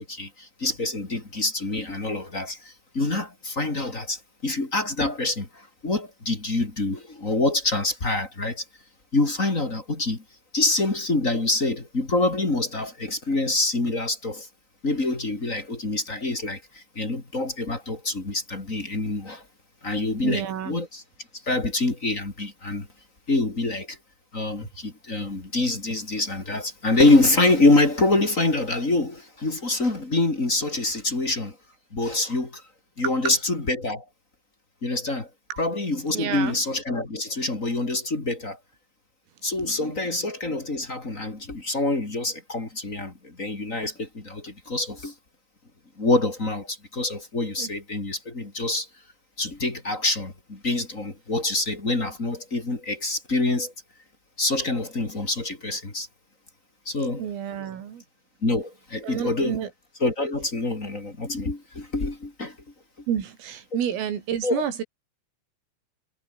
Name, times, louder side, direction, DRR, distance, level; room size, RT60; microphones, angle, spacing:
voice 1, 0.1-8.6 9.1-10.2 10.5-14.5 14.8-19.4 19.8-21.0 21.4-22.9 23.3-24.0 24.3-31.6 31.9-32.6 33.0-34.0 34.8-35.3 35.6-38.6 39.4-45.1 46.0-48.9 49.4-53.7 54.4-56.1 56.8-57.3 58.4-59.6 60.0-62.5 64.4-64.6, left 2 dB, 20° left, 2.7 m, -26 dB
voice 2, 20.2-20.8 33.0-33.1 35.5-35.6 36.1-36.6 39.6-40.0 47.6-47.7 57.2-58.0 59.0-59.7 63.1-64.8, right 9 dB, 85° right, 6.1 m, -30 dB
omnidirectional pair, 5.8 m